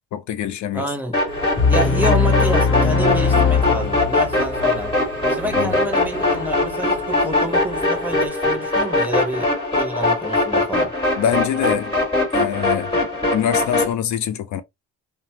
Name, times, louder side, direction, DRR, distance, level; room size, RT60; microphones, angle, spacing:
voice 1, 0.1-0.9 5.4-5.8 9.1-9.2 11.2-11.9 12.3-12.9 13.3-14.6, left 10 dB, 70° left, 0.5 m, -24 dB
voice 2, 0.7-1.2 1.7-4.9 5.3-10.9, equal, 5° right, 1.1 m, -28 dB
sound 1, 1.1-13.9, left 2 dB, 20° left, 1.7 m, -21 dB
Telephone, 1.3-8.3, equal, 35° right, 0.8 m, -35 dB
sound 2, 1.6-4.5, left 5 dB, 45° left, 0.8 m, -19 dB
3.0 x 2.1 x 2.8 m
cardioid pair, 90°, 30 cm